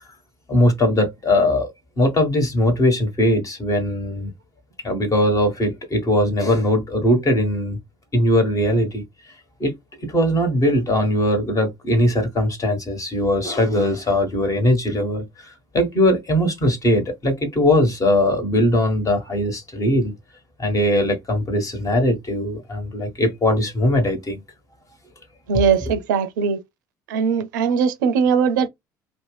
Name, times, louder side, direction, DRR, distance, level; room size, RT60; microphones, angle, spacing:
voice 1, 0.5-4.3 4.8-7.8 8.1-9.0 9.6-9.7 10.0-20.1 20.6-24.4, left 1 dB, 35° left, 1.4 m, -20 dB
voice 2, 25.5-26.6 27.1-28.7, right 6 dB, 80° right, 0.5 m, -20 dB
2.6 x 2.1 x 3.2 m
hypercardioid pair, 60°, 10 cm